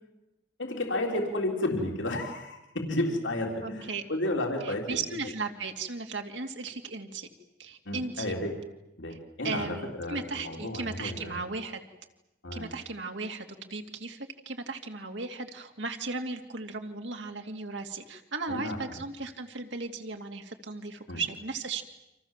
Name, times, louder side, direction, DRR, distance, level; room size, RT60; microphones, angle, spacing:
voice 1, 0.6-5.0 7.9-8.6 9.0-11.4 12.4-12.7 18.5-19.0 21.1-21.2, left 1 dB, 90° left, 1 dB, 3.7 m, -32 dB
voice 2, 3.6-4.0 4.6-7.3 7.6-8.3 9.1-9.2 9.4-11.8 12.5-21.8, right 3 dB, 80° right, 4 dB, 2.8 m, -36 dB
30.0 x 26.5 x 7.5 m, 0.92 s
head